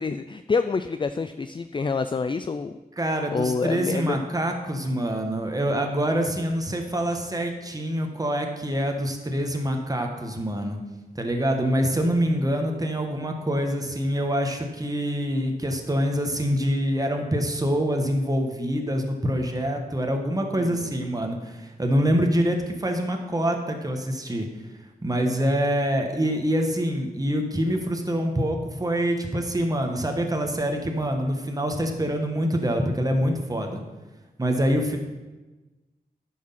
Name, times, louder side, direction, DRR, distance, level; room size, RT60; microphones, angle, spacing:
voice 1, 0.0-2.8 3.3-4.2 20.6-20.9, left 4 dB, 30° left, 10 dB, 0.4 m, -27 dB
voice 2, 3.0-10.8 11.1-24.5 25.0-33.8 34.4-35.0, equal, 25° right, 3 dB, 1.3 m, -25 dB
10.0 x 6.2 x 5.7 m, 1.2 s
wide cardioid pair, 80°, 16 cm